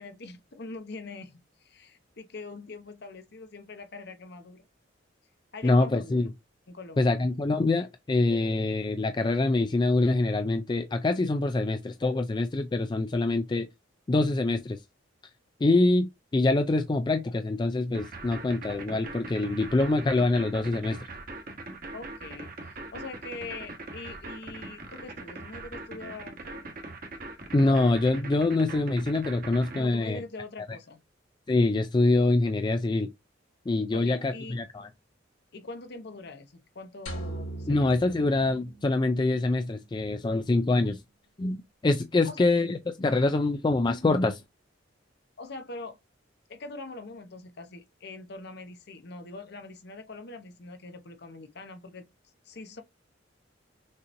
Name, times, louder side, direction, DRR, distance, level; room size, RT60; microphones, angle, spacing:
voice 1, 0.0-4.7 5.5-6.3 6.7-7.1 21.9-22.6 22.9-26.7 29.8-31.0 33.9-34.6 35.5-37.9 42.2-42.5 45.4-46.0 46.5-52.1 52.4-52.8, left 3 dB, 55° left, 0.9 m, -43 dB
voice 2, 5.6-6.3 7.0-13.7 14.1-14.8 15.6-21.0 27.5-30.2 31.5-33.1 33.7-34.9 37.7-41.0 41.4-41.6 41.8-44.4, left 2 dB, 25° left, 0.3 m, -25 dB
sound 1, 17.9-29.8, right 2 dB, 45° right, 1.3 m, -41 dB
sound 2, 37.1-39.3, right 1 dB, 80° left, 2.2 m, -39 dB
6.4 x 2.9 x 2.6 m
head